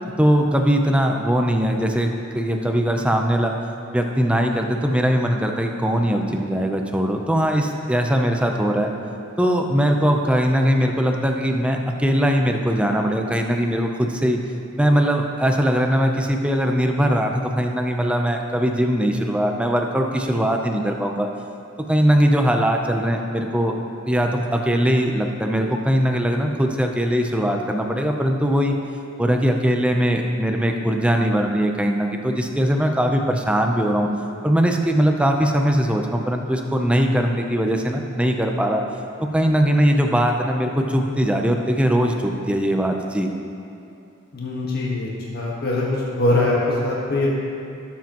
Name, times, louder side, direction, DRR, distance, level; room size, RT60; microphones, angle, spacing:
voice 1, 0.2-3.5 3.9-8.9 9.4-14.4 14.8-21.3 21.9-23.7 24.1-28.8 29.2-34.1 34.4-38.8 39.2-43.3, equal, 5° right, 3 dB, 0.6 m, -20 dB
voice 2, 44.3-45.1 45.3-45.9 46.2-46.6 46.8-47.3, left 2 dB, 50° left, -5 dB, 1.5 m, -22 dB
17.5 x 7.3 x 3.0 m, 2.7 s
head